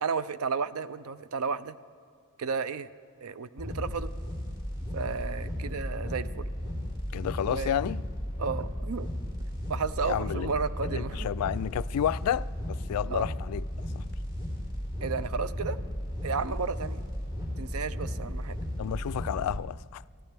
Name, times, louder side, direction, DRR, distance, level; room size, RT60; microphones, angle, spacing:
voice 1, 0.0-1.8 2.4-2.9 3.2-4.1 4.9-6.5 7.4-7.7 8.4-9.1 9.7-11.3 13.1-13.3 15.0-15.8 16.2-17.0 17.6-18.6, right 5 dB, 75° right, 0.5 m, -33 dB
sound 1, 3.6-19.6, equal, 20° right, 3.9 m, -35 dB
voice 2, 7.1-8.0 10.0-10.5 10.9-13.6 14.0-14.1 18.8-20.0, left 9 dB, 80° left, 0.3 m, -31 dB
23.5 x 15.0 x 3.4 m
head